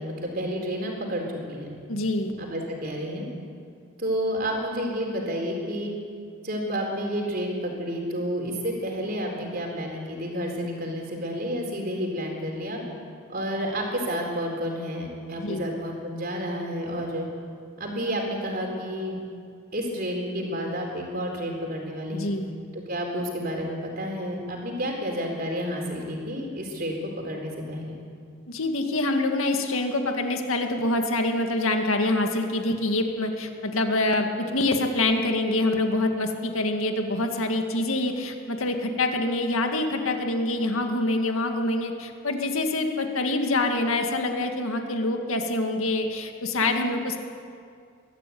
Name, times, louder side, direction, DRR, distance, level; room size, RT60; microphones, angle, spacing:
voice 1, 0.0-1.8 2.4-3.3 4.0-5.9 6.4-12.8 13.3-17.3 17.8-19.2 19.7-22.3 22.7-28.0, equal, 45° right, 1 dB, 4.1 m, -30 dB
voice 2, 1.9-2.4 15.4-15.7 22.1-22.5 28.5-47.2, left 2 dB, 75° left, 4 dB, 2.1 m, -25 dB
22.5 x 14.0 x 9.3 m, 2.2 s
head